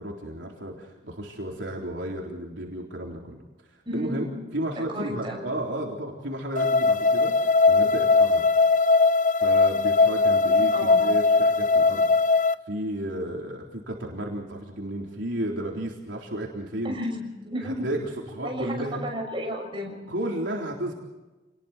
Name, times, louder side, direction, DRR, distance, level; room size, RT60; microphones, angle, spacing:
voice 1, 0.0-3.4 3.9-8.7 9.4-12.4 12.7-17.0 17.6-18.0 18.3-19.0 20.1-20.9, right 1 dB, 70° right, -1 dB, 3.8 m, -33 dB
voice 2, 3.8-4.3 4.9-5.5 10.6-11.1 16.8-17.9 18.4-20.0, equal, 25° right, 0 dB, 6.5 m, -32 dB
sound 1, 6.6-12.5, left 3 dB, 40° left, 0.6 m, -20 dB
29.0 x 20.5 x 4.4 m, 1.1 s
head